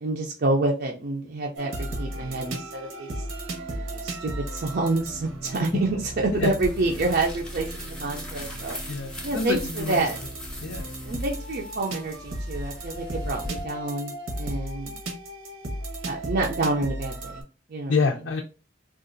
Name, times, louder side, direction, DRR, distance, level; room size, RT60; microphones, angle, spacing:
voice 1, 0.0-3.1 4.0-5.7 6.3-8.8 9.2-10.2 11.0-14.1 14.4-15.0 16.0-17.4 17.7-17.9, right 2 dB, 50° right, -1 dB, 0.5 m, -28 dB
sound 1, 1.6-17.4, right 1 dB, 85° right, 0.9 m, -36 dB
sound 2, 6.2-13.6, left 1 dB, 5° left, 0.7 m, -40 dB
voice 2, 8.9-10.1 10.6-10.9 17.9-18.4, left 4 dB, 75° left, 3 dB, 0.4 m, -27 dB
3.7 x 2.4 x 2.5 m, 0.33 s
head